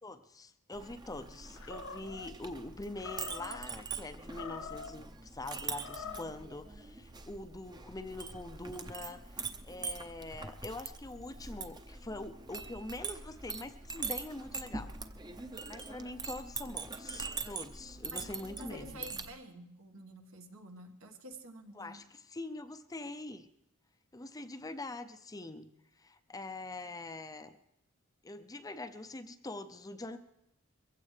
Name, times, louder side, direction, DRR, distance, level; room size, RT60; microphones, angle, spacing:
voice 1, 0.0-14.9 15.7-19.1 21.7-23.5 24.1-25.7 26.0-27.5 28.2-30.2, left 2 dB, 15° left, 8 dB, 0.6 m, -44 dB
Chink clink, 0.7-19.3, right 4 dB, 20° right, 0.7 m, -43 dB
Animal, 1.6-2.3 3.0-3.6 4.2-5.0 5.7-6.4, left 5 dB, 70° left, 0.8 m, -44 dB
voice 2, 18.6-22.1, right 1 dB, 80° right, 4 dB, 1.5 m, -49 dB
22.5 x 16.0 x 3.3 m, 0.83 s
head